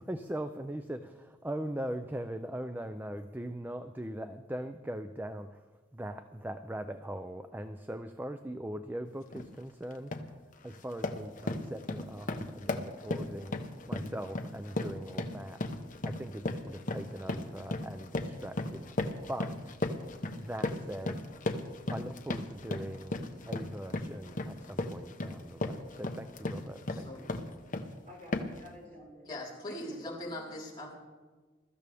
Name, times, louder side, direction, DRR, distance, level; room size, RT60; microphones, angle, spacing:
voice 1, 0.0-15.8 16.0-18.9 19.3-21.2 21.9-23.2 23.5-27.4, right 1 dB, 10° right, 8 dB, 0.5 m, -41 dB
sound 1, 9.3-9.5 9.9-10.3 10.7-27.9 28.3-28.7, left 2 dB, 45° left, 1.1 m, -36 dB
voice 2, 26.9-27.2 29.2-31.0, left 1 dB, 25° left, -6 dB, 4.1 m, -41 dB
voice 3, 28.0-30.5, equal, 40° right, -4 dB, 6.1 m, -52 dB
22.5 x 13.5 x 3.5 m, 1.3 s
head